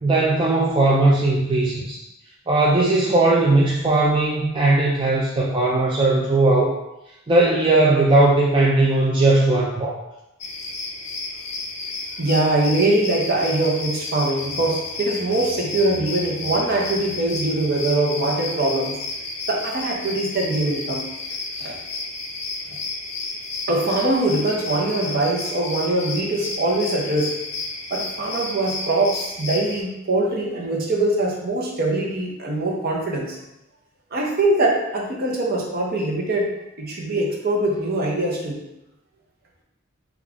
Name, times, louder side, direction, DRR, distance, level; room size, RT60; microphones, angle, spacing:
voice 1, 0.0-2.0 2.5-6.8 7.3-10.0, right 2 dB, 25° right, -5 dB, 0.4 m, -18 dB
sound 1, 10.4-29.8, left 3 dB, 35° left, 0.5 m, -32 dB
voice 2, 12.2-19.0 19.5-21.0 21.6-21.8 23.7-27.4 27.9-33.4 34.1-36.5 36.8-38.6, right 2 dB, 50° right, -2 dB, 0.8 m, -22 dB
3.5 x 2.4 x 3.6 m, 0.89 s
head